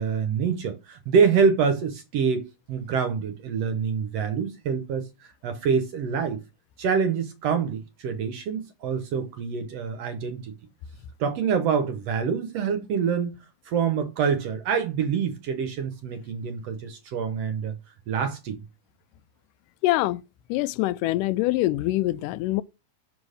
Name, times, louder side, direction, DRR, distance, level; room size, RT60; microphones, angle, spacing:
voice 1, 0.0-5.1 5.4-6.4 6.8-10.5 11.2-13.4 13.7-17.7 18.1-18.6, right 6 dB, 65° right, 1.7 m, -26 dB
voice 2, 19.8-20.2 20.5-22.6, left 17 dB, 85° left, 2.1 m, -24 dB
6.2 x 5.0 x 4.9 m
omnidirectional pair, 3.7 m